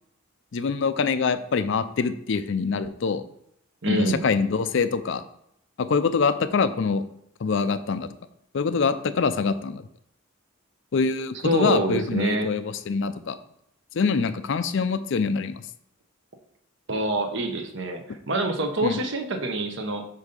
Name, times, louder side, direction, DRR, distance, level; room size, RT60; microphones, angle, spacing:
voice 1, 0.5-3.2 3.9-5.2 5.8-7.0 7.4-8.1 8.5-9.8 10.9-13.4 13.9-15.6 18.8-19.0, left 5 dB, 60° left, 12 dB, 0.4 m, -24 dB
voice 2, 3.8-4.3 11.4-12.5 16.9-20.1, right 1 dB, 60° right, 5 dB, 0.9 m, -26 dB
8.0 x 2.8 x 5.2 m, 0.75 s
head